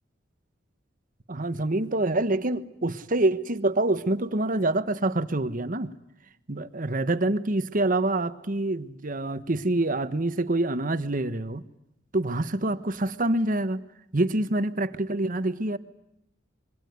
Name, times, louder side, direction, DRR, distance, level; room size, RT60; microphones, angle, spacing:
voice 1, 1.3-5.9 6.5-11.6 12.1-13.8 14.1-15.8, right 2 dB, 45° right, 12 dB, 1.3 m, -26 dB
26.5 x 23.0 x 9.5 m, 0.81 s
head